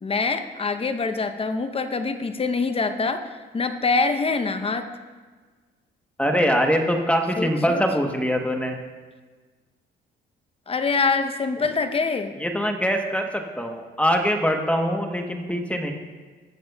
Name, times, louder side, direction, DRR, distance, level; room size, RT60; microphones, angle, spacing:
voice 1, 0.0-3.3 3.5-4.9 7.4-7.8 10.7-12.3, left 4 dB, 30° left, 8 dB, 0.8 m, -24 dB
voice 2, 6.2-8.8 12.4-15.9, equal, 5° left, 3 dB, 1.1 m, -23 dB
22.0 x 7.3 x 2.3 m, 1.4 s
cardioid pair, 90°, 20 cm